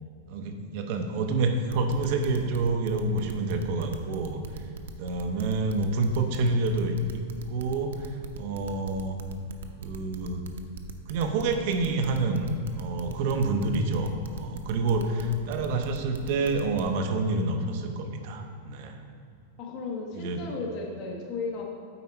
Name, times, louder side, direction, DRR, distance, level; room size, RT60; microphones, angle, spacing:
voice 1, 0.3-4.6 5.0-7.2 7.5-8.1 8.4-9.2 9.8-10.5 11.1-12.5 12.8-19.0 20.1-20.4, right 3 dB, 45° right, 5 dB, 0.7 m, -28 dB
sound 1, 1.7-16.8, right 7 dB, 85° right, 0.6 m, -40 dB
voice 2, 14.9-15.6 19.6-21.6, left 4 dB, 35° left, -1 dB, 1.1 m, -36 dB
8.1 x 4.8 x 4.3 m, 2.5 s
supercardioid pair, 170°, 0 cm